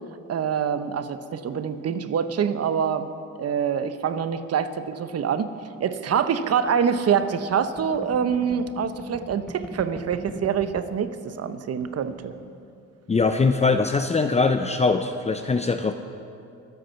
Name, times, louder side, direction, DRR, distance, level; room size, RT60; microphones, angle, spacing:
voice 1, 0.3-3.1 3.4-5.5 5.8-12.3, right 7 dB, 55° right, 10 dB, 1.0 m, -25 dB
sound 1, 6.5-11.0 11.4-11.5 11.7-12.3, equal, ahead, 1.8 m, -41 dB
voice 2, 13.1-15.9, left 4 dB, 20° left, 7 dB, 0.6 m, -22 dB
24.0 x 8.1 x 5.8 m, 2.6 s
cardioid pair, 90°, 30 cm